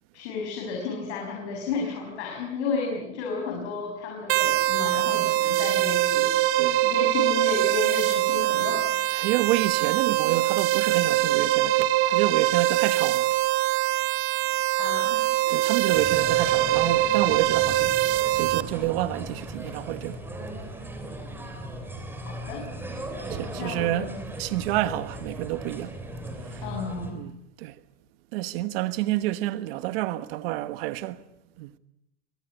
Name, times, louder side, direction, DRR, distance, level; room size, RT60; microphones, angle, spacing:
voice 1, 0.1-6.3 6.8-8.9 14.8-15.5 22.2-22.6 23.6-24.2 26.6-27.2, left 5 dB, 60° left, 6.6 m, -32 dB
sound 1, 4.3-18.6, right 15 dB, 35° right, 1.0 m, -23 dB
voice 2, 9.1-13.3 15.5-18.0 18.3-20.2 23.2-26.0 26.4-26.6 27.1-27.3 27.6-27.7 28.3-31.2 31.6-31.7, right 16 dB, 50° right, 1.4 m, -29 dB
sound 2, 15.9-27.1, right 1 dB, 5° right, 3.3 m, -38 dB
24.0 x 19.0 x 8.2 m
supercardioid pair, 155°, 38 cm